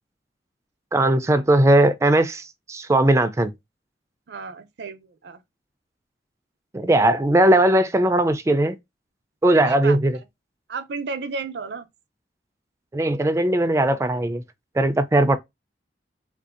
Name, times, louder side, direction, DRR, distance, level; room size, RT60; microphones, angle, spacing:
voice 1, 0.9-3.5 6.7-8.8 9.4-10.2 12.9-14.4 14.8-15.4, right 1 dB, 15° right, 0.3 m, -19 dB
voice 2, 4.3-5.4 9.6-10.0 10.7-11.9, right 4 dB, 70° right, 0.5 m, -33 dB
3.5 x 2.6 x 2.4 m
head